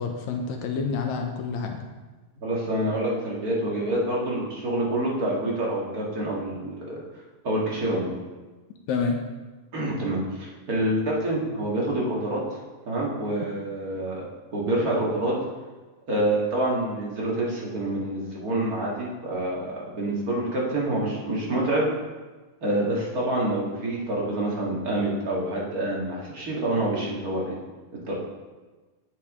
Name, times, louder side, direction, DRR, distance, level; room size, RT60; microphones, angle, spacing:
voice 1, 0.0-1.8 8.9-9.2, left 5 dB, 75° left, 3 dB, 1.9 m, -28 dB
voice 2, 2.4-7.0 7.4-8.2 9.7-12.6 12.8-14.2 14.5-15.3 16.1-21.9 22.6-27.6 28.0-28.1, right 1 dB, 35° right, -4 dB, 1.6 m, -27 dB
8.7 x 7.4 x 3.6 m, 1.3 s
omnidirectional pair, 3.8 m